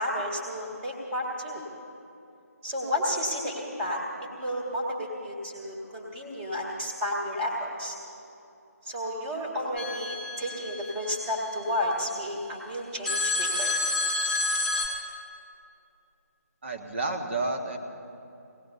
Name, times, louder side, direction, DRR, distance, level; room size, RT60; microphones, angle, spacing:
voice 1, 0.0-1.6 2.6-4.0 4.4-8.0 8.9-13.7, left 1 dB, 15° right, -2 dB, 2.0 m, -32 dB
sound 1, 9.8-12.0 13.1-14.9, left 2 dB, 5° left, 1.9 m, -30 dB
voice 2, 16.6-17.8, right 3 dB, 45° right, 2 dB, 1.7 m, -30 dB
25.0 x 18.5 x 2.8 m, 2.7 s
figure-of-eight pair, 155°, 9 cm